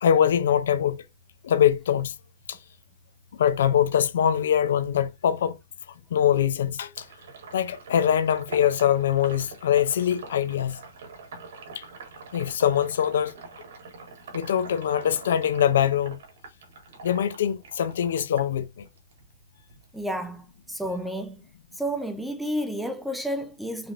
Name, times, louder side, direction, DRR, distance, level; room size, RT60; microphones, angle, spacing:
voice 1, 0.0-1.0 1.4-2.1 2.5-2.6 3.3-5.6 6.1-7.1 7.5-10.8 11.8-11.9 12.3-13.3 14.3-16.2 17.0-18.8, left 9 dB, 75° left, 0.6 m, -23 dB
Sink (filling or washing), 7.0-19.2 19.6-21.0, right 4 dB, 75° right, 1.9 m, -44 dB
voice 2, 19.9-21.4 21.8-23.9, equal, ahead, 0.4 m, -31 dB
5.0 x 2.5 x 2.9 m
hypercardioid pair, 165°, 0 cm